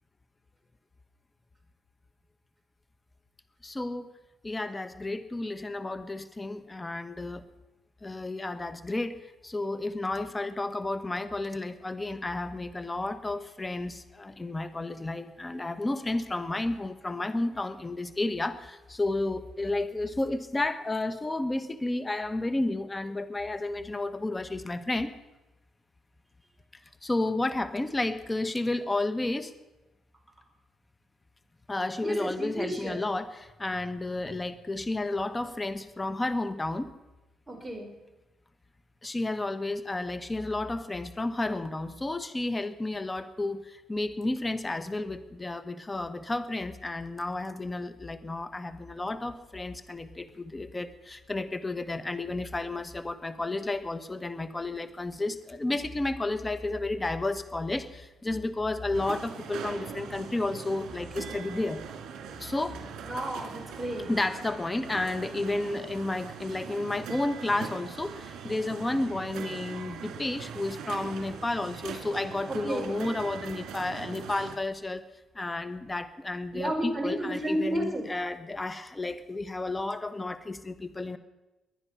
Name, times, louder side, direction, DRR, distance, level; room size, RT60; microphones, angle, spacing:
voice 1, 3.6-4.1 4.4-7.4 8.0-9.2 9.4-25.1 27.0-29.5 31.7-36.9 39.0-61.8 62.4-62.8 64.1-75.0 75.3-81.2, left 2 dB, 20° left, 11 dB, 1.2 m, -32 dB
voice 2, 32.0-33.0 37.5-37.9 63.0-64.1 72.5-73.0 76.5-78.1, right 1 dB, 10° right, 1 dB, 4.9 m, -32 dB
sound 1, 58.9-74.6, right 7 dB, 75° right, 2.3 m, -41 dB
22.0 x 9.9 x 5.7 m, 1.0 s
cardioid pair, 90°, 0 cm